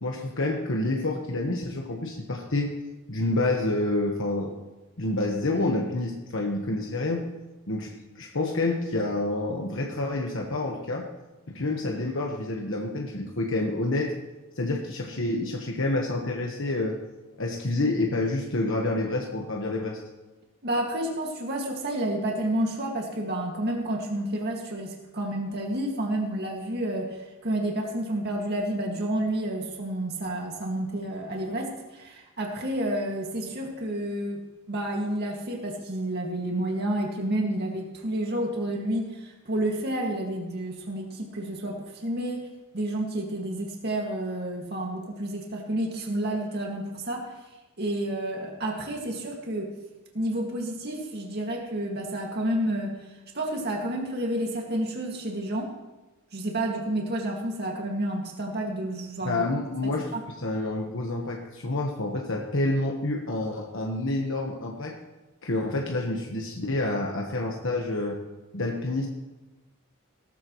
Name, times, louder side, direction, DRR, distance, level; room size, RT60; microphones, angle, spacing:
voice 1, 0.0-2.8 3.1-4.6 5.0-7.3 7.7-11.1 11.5-14.1 14.5-17.0 17.4-20.0 59.2-60.1 60.4-65.0 65.4-68.2 68.5-69.1, left 2 dB, 60° left, 1 dB, 1.3 m, -28 dB
voice 2, 20.6-34.4 34.7-42.5 42.7-47.3 47.8-49.7 50.1-53.0 53.3-55.7 56.3-59.4 59.8-60.2, right 1 dB, 50° right, 0 dB, 2.1 m, -30 dB
18.0 x 14.0 x 3.2 m, 1.1 s
head